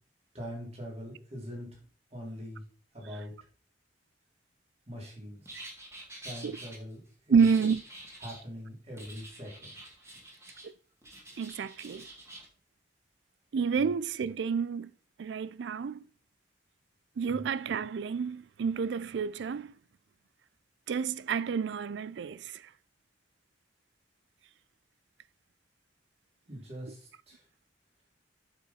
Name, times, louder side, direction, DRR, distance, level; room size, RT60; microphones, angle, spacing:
voice 1, 0.3-1.8 2.1-2.6 2.9-3.3 4.9-5.6 6.2-7.4 8.2-9.7 17.3-17.4 26.5-27.4, equal, 35° right, 3.1 m, -43 dB
sound 1, 5.4-6.8 7.4-8.4 9.0-10.7 11.0-12.5, right 1 dB, 15° right, 2.0 m, -47 dB
voice 2, 7.3-7.8 10.6-10.7 11.4-12.1 13.5-14.9 15.2-16.0 17.2-19.7 20.9-22.6, right 6 dB, 65° right, 0.4 m, -29 dB
8.2 x 6.3 x 4.2 m
head